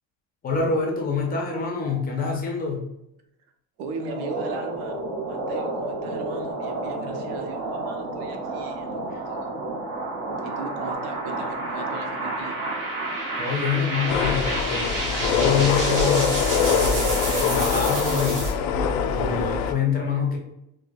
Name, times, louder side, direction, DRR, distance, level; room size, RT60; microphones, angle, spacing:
voice 1, 0.4-2.9 9.1-9.2 13.4-16.5 16.8-18.5 19.1-20.4, left 5 dB, 25° left, 0 dB, 0.5 m, -26 dB
voice 2, 3.8-9.6 10.4-12.6, right 3 dB, 85° right, 4 dB, 0.8 m, -38 dB
sound 1, 3.9-18.5, right 2 dB, 55° right, 1.1 m, -30 dB
sound 2, 14.1-19.7, left 6 dB, 85° left, 0.5 m, -23 dB
4.5 x 2.1 x 2.5 m, 0.84 s
cardioid pair, 165°, 38 cm